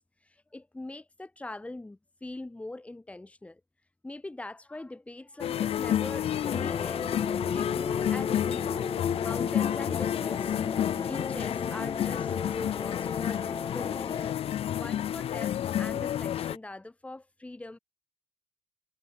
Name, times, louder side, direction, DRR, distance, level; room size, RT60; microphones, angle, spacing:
voice 1, 0.0-3.6 4.0-7.1 7.5-10.5 10.9-14.1 14.7-17.8, left 2 dB, 10° left, 4.1 m, -42 dB
sound 1, 5.4-16.6, left 10 dB, 65° left, 1.6 m, -30 dB
sound 2, 6.4-14.3, left 5 dB, 35° left, 6.6 m, -34 dB
cardioid pair, 115°, 11 cm